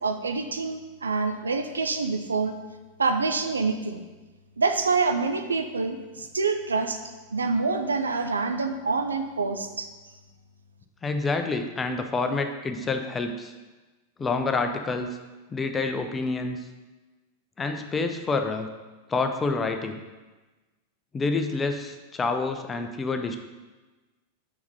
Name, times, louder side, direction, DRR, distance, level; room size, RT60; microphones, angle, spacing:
voice 1, 0.0-2.6 3.0-4.0 4.6-7.0 7.3-9.9, right 4 dB, 75° right, 7 dB, 0.4 m, -26 dB
voice 2, 11.0-13.5 14.2-15.2 15.5-16.6 17.6-18.7 19.1-20.0 21.1-23.4, left 3 dB, 15° left, 6 dB, 0.5 m, -28 dB
4.8 x 4.8 x 5.2 m, 1.2 s
figure-of-eight pair, 90°, 0 cm